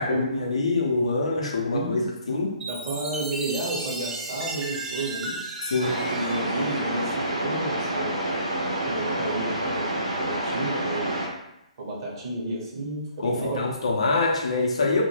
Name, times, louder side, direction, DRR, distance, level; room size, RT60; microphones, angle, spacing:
voice 1, 0.0-2.6 5.7-6.0 13.2-15.0, left 3 dB, 60° left, 0 dB, 0.5 m, -25 dB
voice 2, 1.7-2.0 2.7-5.4 5.8-8.1 8.8-11.2 11.8-13.7, right 2 dB, 40° right, -4 dB, 0.8 m, -32 dB
Chime, 2.6-7.3, right 2 dB, 10° right, 0.4 m, -35 dB
sound 1, 5.8-11.3, right 1 dB, 75° right, 0.7 m, -28 dB
2.1 x 2.1 x 3.1 m, 0.86 s
figure-of-eight pair, 130°, 4 cm